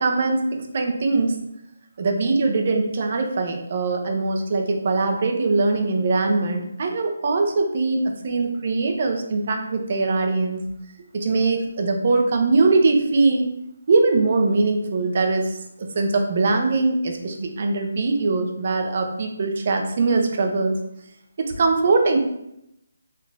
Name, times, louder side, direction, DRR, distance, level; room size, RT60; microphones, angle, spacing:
voice 1, 0.0-1.4 2.0-10.6 11.1-13.5 13.9-20.8 21.4-22.2, right 3 dB, 45° right, 3 dB, 0.5 m, -21 dB
3.3 x 3.2 x 2.4 m, 0.80 s
hypercardioid pair, 165°, 0 cm